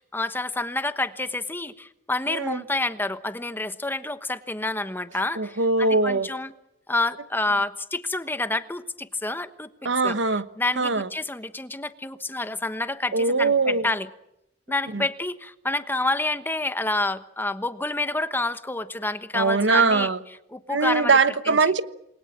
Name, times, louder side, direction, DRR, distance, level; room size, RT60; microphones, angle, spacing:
voice 1, 0.0-6.5 6.9-10.2 10.6-14.1 14.7-20.1 20.5-21.1 21.5-21.6, left 2 dB, 10° left, 1.1 m, -28 dB
voice 2, 2.3-2.6 5.4-6.3 9.8-10.5 10.8-11.1 13.1-13.9 14.9-15.1 19.3-20.2 20.7-21.8, right 4 dB, 75° right, 1.2 m, -21 dB
28.5 x 21.5 x 7.5 m
head